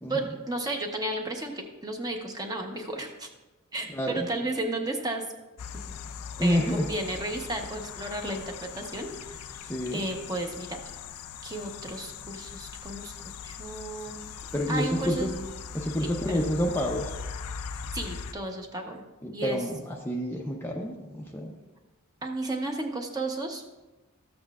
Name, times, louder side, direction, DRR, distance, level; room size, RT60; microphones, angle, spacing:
voice 1, 0.1-3.3 3.7-5.2 6.4-9.6 9.9-10.8 11.4-13.1 13.4-14.2 14.7-15.3 16.3-16.5 17.9-19.0 19.3-19.6 22.2-23.6, right 2 dB, 15° right, 3 dB, 0.8 m, -33 dB
sound 1, 5.6-18.3, left 6 dB, 90° left, 0.4 m, -40 dB
voice 2, 6.4-6.9 9.6-10.0 14.5-15.3 15.7-17.1 19.2-21.5, equal, 10° left, 0 dB, 0.6 m, -28 dB
13.5 x 7.9 x 2.4 m, 1.1 s
head